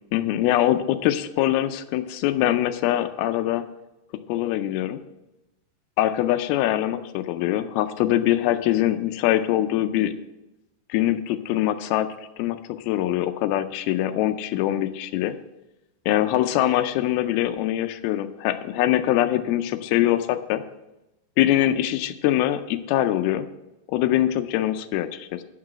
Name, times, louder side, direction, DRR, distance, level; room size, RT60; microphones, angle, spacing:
voice 1, 0.1-3.6 4.3-5.0 6.0-10.1 10.9-12.1 12.4-15.3 16.1-20.6 21.4-23.5 23.9-25.4, left 13 dB, 90° left, 9 dB, 2.5 m, -23 dB
9.4 x 6.0 x 7.5 m, 0.95 s
omnidirectional pair, 4.3 m